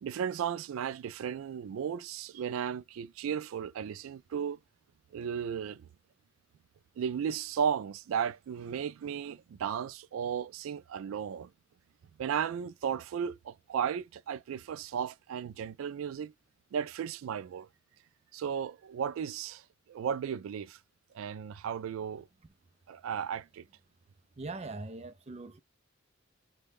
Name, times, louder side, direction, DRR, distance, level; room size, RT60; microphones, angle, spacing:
voice 1, 0.0-4.6 5.1-5.9 7.0-11.5 12.2-16.3 16.7-17.7 18.3-19.6 19.9-20.8 21.1-22.3 22.9-23.7, right 8 dB, 90° right, 0.3 m, -35 dB
voice 2, 24.4-25.6, right 3 dB, 35° right, 0.5 m, -41 dB
3.8 x 2.2 x 3.5 m
head